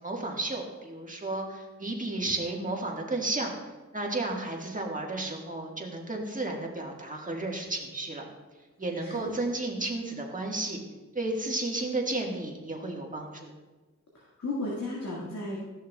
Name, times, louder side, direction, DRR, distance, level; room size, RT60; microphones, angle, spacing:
voice 1, 0.0-3.5 3.9-8.3 8.8-10.8 11.1-13.5, right 2 dB, 25° right, 0 dB, 1.6 m, -33 dB
voice 2, 9.0-9.3 14.1-15.6, left 2 dB, 60° left, -6 dB, 1.9 m, -34 dB
13.0 x 6.4 x 2.3 m, 1.2 s
cardioid pair, 60°, 31 cm